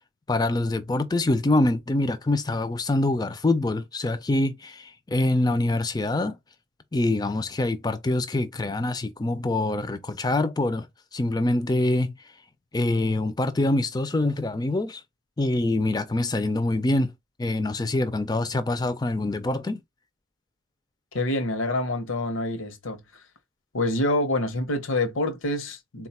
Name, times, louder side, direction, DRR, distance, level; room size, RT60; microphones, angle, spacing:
voice 1, 0.3-6.4 6.9-10.9 11.1-12.1 12.7-15.0 15.4-17.1 17.4-19.8, left 2 dB, 20° left, 0.4 m, -25 dB
voice 2, 21.1-23.0 23.7-26.1, left 1 dB, 70° left, 0.8 m, -26 dB
3.9 x 2.3 x 4.2 m
head